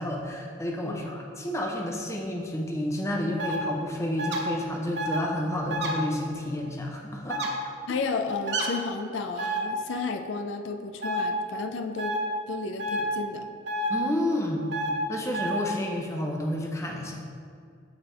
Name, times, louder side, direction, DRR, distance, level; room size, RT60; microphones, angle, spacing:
voice 1, 0.0-7.7 13.9-14.7 15.1-17.2, left 1 dB, 15° left, 1 dB, 0.6 m, -30 dB
sound 1, 3.4-3.6 4.2-4.4 4.9-5.2 5.7-5.9 7.3-7.5 8.5-8.7 9.4-9.6 11.0-11.2 12.0-12.2 12.8-13.0 13.7-13.9 14.7-14.9 15.3-15.5, right 1 dB, 65° right, 0.8 m, -29 dB
voice 2, 7.9-12.1 12.5-13.5, left 4 dB, 85° left, 5 dB, 0.4 m, -32 dB
8.1 x 3.4 x 4.3 m, 2.3 s
head